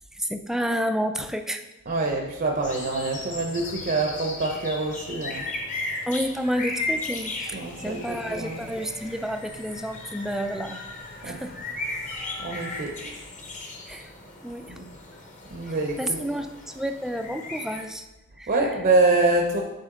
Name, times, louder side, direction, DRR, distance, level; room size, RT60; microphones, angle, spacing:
voice 1, 0.1-1.7 6.1-10.9 11.2-11.6 13.9-14.1 14.4-14.8 15.7-18.1 18.4-18.5, equal, ahead, 7 dB, 0.3 m, -30 dB
voice 2, 1.9-5.5 7.5-8.7 11.2-11.4 12.0-12.1 12.4-13.0 14.7-14.8 15.5-16.2 18.5-19.6, right 2 dB, 40° right, 1 dB, 0.7 m, -25 dB
sound 1, 2.6-17.9, left 2 dB, 35° left, 0.9 m, -36 dB
sound 2, 7.4-12.8, left 2 dB, 70° left, 2.1 m, -43 dB
9.2 x 4.2 x 3.7 m, 1.0 s
head